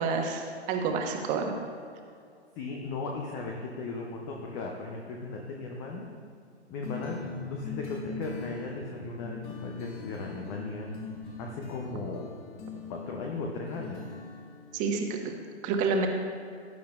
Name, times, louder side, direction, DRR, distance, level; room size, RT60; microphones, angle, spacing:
voice 1, 0.0-1.6 14.7-15.1 15.6-16.1, right 4 dB, 20° right, 3 dB, 1.2 m, -28 dB
voice 2, 2.6-6.1 6.7-7.2 7.5-10.9 11.4-12.3 12.9-14.1, left 3 dB, 10° left, 0 dB, 0.4 m, -37 dB
sound 1, 6.8-15.3, left 4 dB, 45° left, 2.5 m, -41 dB
18.0 x 9.9 x 2.3 m, 2.3 s
figure-of-eight pair, 125°, 34 cm